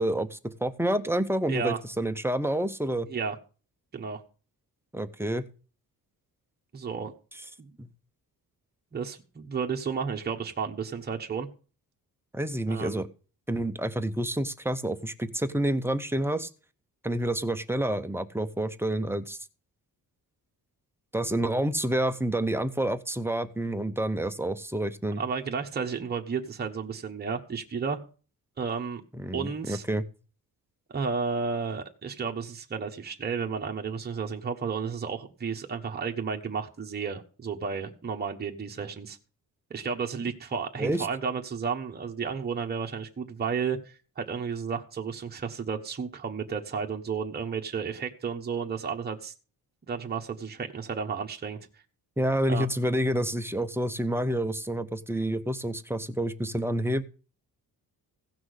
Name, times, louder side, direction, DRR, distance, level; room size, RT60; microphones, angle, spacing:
voice 1, 0.0-3.1 4.9-5.5 7.8-7.9 12.3-13.1 13.5-16.5 17.0-19.4 21.1-25.2 29.1-30.0 40.8-41.1 52.2-57.0, right 1 dB, 5° right, 9 dB, 0.7 m, -28 dB
voice 2, 1.5-1.8 3.1-3.4 3.9-4.2 6.7-7.1 7.6-7.7 8.9-11.5 12.7-13.0 25.2-28.0 28.6-29.0 29.3-29.8 30.9-39.2 39.7-49.3 49.9-51.6 52.5-52.7, right 5 dB, 25° right, 2 dB, 1.2 m, -32 dB
16.0 x 6.1 x 6.4 m, 0.38 s
wide cardioid pair, 150°, 36 cm